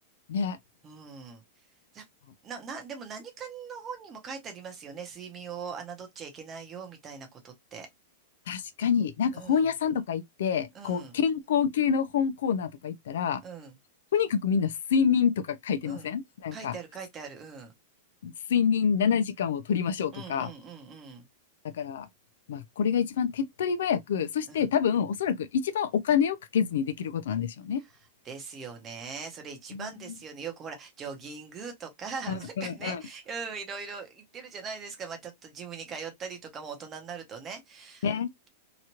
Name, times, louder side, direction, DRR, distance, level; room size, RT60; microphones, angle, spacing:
voice 1, 0.8-1.4 1.9-2.0 2.4-7.9 9.3-9.7 10.7-11.2 13.4-13.8 15.8-16.1 16.5-17.7 20.1-21.2 24.5-24.7 28.2-38.2, right 5 dB, 20° right, 0.8 m, -41 dB
voice 2, 8.5-13.4 14.1-16.7 18.2-20.5 21.8-22.1 22.5-27.8 29.7-30.2 32.3-33.0 38.0-38.3, left 7 dB, 70° left, 0.5 m, -27 dB
2.9 x 2.4 x 2.8 m
supercardioid pair, 170°, 0 cm